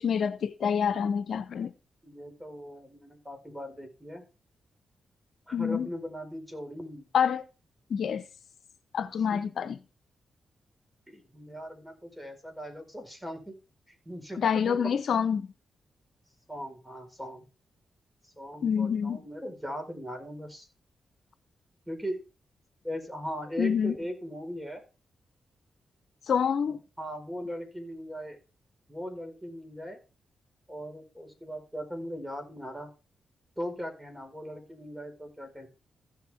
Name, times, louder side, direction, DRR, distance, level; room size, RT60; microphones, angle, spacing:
voice 1, 0.0-1.7 5.5-5.9 7.1-7.4 7.9-8.3 8.9-9.8 14.4-15.5 18.6-19.2 23.6-24.0 26.3-26.8, left 7 dB, 70° left, 0.7 m, -27 dB
voice 2, 2.0-4.2 5.5-7.1 9.3-9.4 11.1-13.6 14.0-14.8 16.5-17.4 18.2-20.7 21.9-22.2 22.8-24.8 26.7-28.4 28.9-30.0 30.7-32.9 33.6-35.7, equal, 10° right, 4.7 m, -39 dB
15.5 x 6.7 x 3.6 m
cardioid pair, 55°, 0 cm